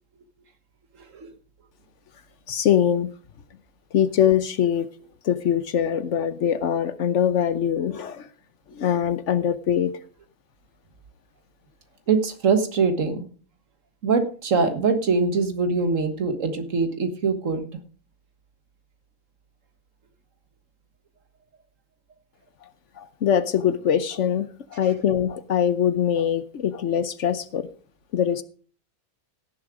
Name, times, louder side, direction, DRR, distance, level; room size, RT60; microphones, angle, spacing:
voice 1, 2.5-3.1 3.9-4.9 5.2-8.3 8.7-9.9 22.6-22.7 23.0-27.7 28.1-28.4, left 9 dB, 65° left, 1.0 m, -23 dB
voice 2, 12.1-13.3 14.0-17.6, right 4 dB, 65° right, 1.7 m, -23 dB
16.5 x 7.2 x 5.0 m
omnidirectional pair, 1.5 m